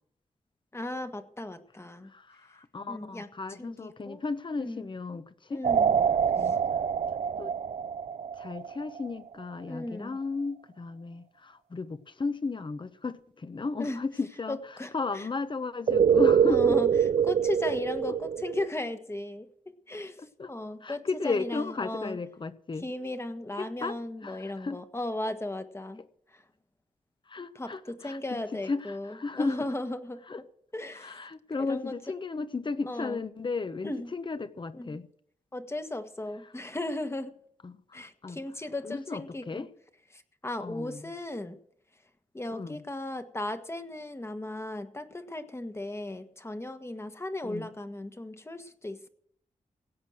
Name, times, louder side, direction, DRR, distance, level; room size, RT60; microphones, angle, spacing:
voice 1, 0.7-2.1 2.9-4.2 4.6-4.9 5.5-6.0 6.4-6.6 9.7-10.2 13.8-14.0 14.5-15.3 16.5-16.9 17.2-19.5 19.9-22.2 22.7-26.0 26.3-26.4 27.5-30.2 30.7-31.3 31.6-31.9 32.8-33.2 33.8-34.1 34.7-35.0 35.5-37.3 37.9-39.7 40.1-41.6 42.3-49.1, left 1 dB, 20° left, 1.5 m, -36 dB
voice 2, 2.0-5.6 6.3-6.6 7.4-7.5 8.4-14.6 14.9-16.8 20.2-20.5 20.8-22.9 23.6-24.8 27.3-29.7 30.3-30.4 30.9-35.1 37.6-38.4 38.8-39.7 40.6-41.1 42.5-42.8 47.4-47.7, left 4 dB, 40° left, 1.1 m, -35 dB
sound 1, 5.6-9.0 15.9-18.7, right 7 dB, 55° right, 0.4 m, -25 dB
17.0 x 8.3 x 6.3 m
cardioid pair, 80°, 13 cm